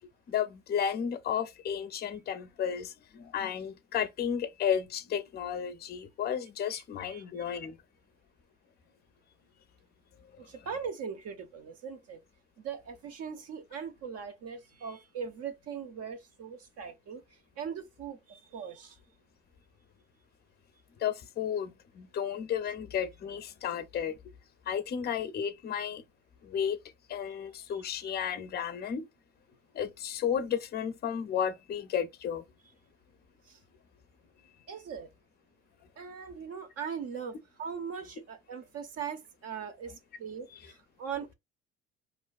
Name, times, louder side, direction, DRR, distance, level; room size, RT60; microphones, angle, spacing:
voice 1, 0.3-7.8 21.0-24.2 24.7-26.0 26.4-26.8 27.1-29.1 29.7-32.4 40.5-40.6, left 8 dB, 30° left, 0.5 m, -33 dB
voice 2, 6.7-7.6 10.4-12.2 12.6-17.2 17.6-19.0 28.0-28.1 33.5-33.6 34.7-35.1 36.0-41.3, right 7 dB, 50° right, 0.6 m, -40 dB
2.5 x 2.1 x 2.3 m
hypercardioid pair, 65°, 31 cm